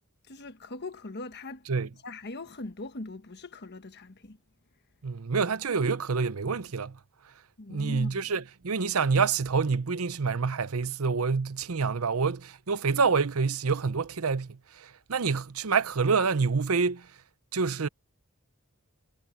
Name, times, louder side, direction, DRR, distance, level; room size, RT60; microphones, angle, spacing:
voice 1, 0.3-1.6 2.0-4.4 7.6-8.3, left 2 dB, 50° left, 1.3 m, -40 dB
voice 2, 5.0-7.0 7.7-17.1 17.5-17.9, right 5 dB, 80° right, 0.8 m, -27 dB
head